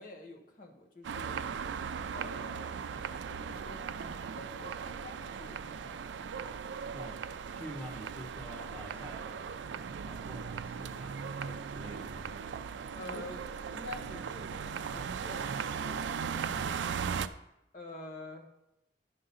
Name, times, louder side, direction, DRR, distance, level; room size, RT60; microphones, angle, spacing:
voice 1, 0.0-1.5 2.1-2.7 3.1-6.0 12.9-13.4 13.7-16.7 17.7-18.5, left 2 dB, 50° left, 1 dB, 1.2 m, -48 dB
sound 1, 1.0-17.3, right 6 dB, 90° right, 0.4 m, -38 dB
voice 2, 7.5-9.4 10.0-12.3, equal, 10° left, -2 dB, 1.6 m, -47 dB
10.5 x 3.8 x 5.5 m, 0.85 s
head